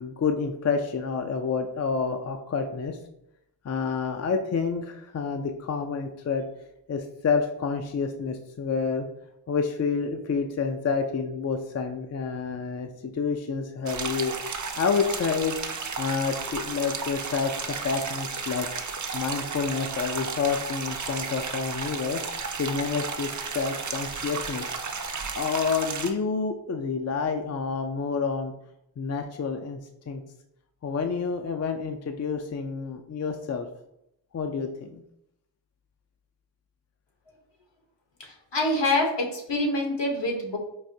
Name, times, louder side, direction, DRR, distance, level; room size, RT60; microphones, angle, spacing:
voice 1, 0.0-3.0 3.6-9.1 9.5-14.3 14.8-15.6 16.0-18.7 19.1-22.2 22.6-24.8 25.3-28.5 29.0-29.8 30.1-30.2 30.8-33.7 34.3-35.0, left 5 dB, 35° left, 5 dB, 0.4 m, -29 dB
sound 1, 13.9-26.1, right 5 dB, 40° right, 0.5 m, -33 dB
voice 2, 38.2-40.6, left 2 dB, 65° left, 1 dB, 1.1 m, -26 dB
4.7 x 2.5 x 2.7 m, 0.79 s
cardioid pair, 55°, 46 cm